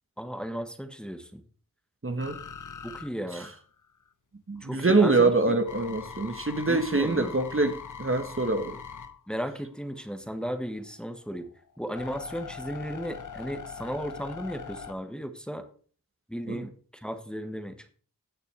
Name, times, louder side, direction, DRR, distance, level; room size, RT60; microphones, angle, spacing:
voice 1, 0.2-1.4 2.8-3.5 4.6-5.6 6.7-7.3 9.3-11.5 11.8-15.6 16.3-17.9, equal, ahead, 7 dB, 1.5 m, -35 dB
voice 2, 2.0-2.4 3.3-3.5 4.5-8.8 16.5-16.7, right 3 dB, 35° right, 7 dB, 1.3 m, -25 dB
sound 1, 2.2-4.1 4.6-10.1 10.7-14.9, left 7 dB, 60° left, 1.0 m, -42 dB
16.0 x 6.6 x 3.4 m, 0.43 s
cardioid pair, 45°, 35 cm